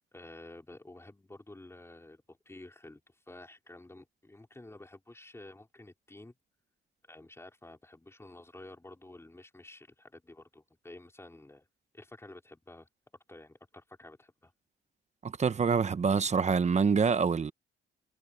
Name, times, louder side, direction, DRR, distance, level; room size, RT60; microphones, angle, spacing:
voice 1, 0.1-6.3 7.0-11.7 11.9-12.9 13.3-14.5, left 2 dB, 15° left, 5.0 m, -51 dB
voice 2, 15.2-17.5, right 5 dB, 35° right, 1.2 m, -26 dB
cardioid pair, 90°, 20 cm